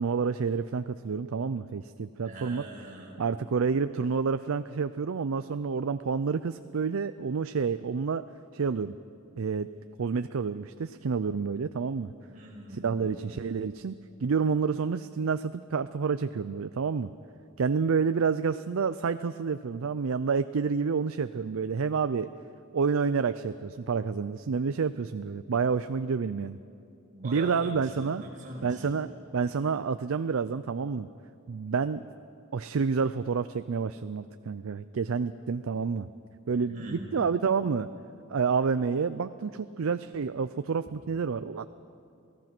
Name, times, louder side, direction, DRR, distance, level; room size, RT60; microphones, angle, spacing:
voice 1, 0.0-2.7 3.2-8.3 8.5-8.9 9.4-9.7 10.0-12.1 12.7-14.0 14.2-17.1 17.6-22.3 22.7-26.6 27.2-28.2 28.6-31.1 31.5-32.0 32.5-36.1 36.5-37.9 38.3-41.7, right 5 dB, 90° right, 11 dB, 0.5 m, -29 dB
voice 2, 2.2-3.2 12.2-13.1 27.1-28.9 36.7-37.2, right 1 dB, 40° right, -2 dB, 5.7 m, -43 dB
28.0 x 18.0 x 6.1 m, 2.5 s
head